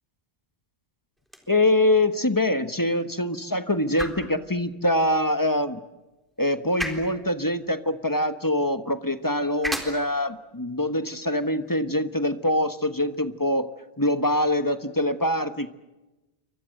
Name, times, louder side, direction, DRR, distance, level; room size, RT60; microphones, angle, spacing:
sound 1, 1.2-13.2, equal, ahead, 3.8 m, -41 dB
voice 1, 1.5-5.8 6.4-13.7 14.0-15.7, left 1 dB, 20° left, 10 dB, 1.1 m, -24 dB
28.5 x 24.5 x 7.7 m, 1.1 s
omnidirectional pair, 1.1 m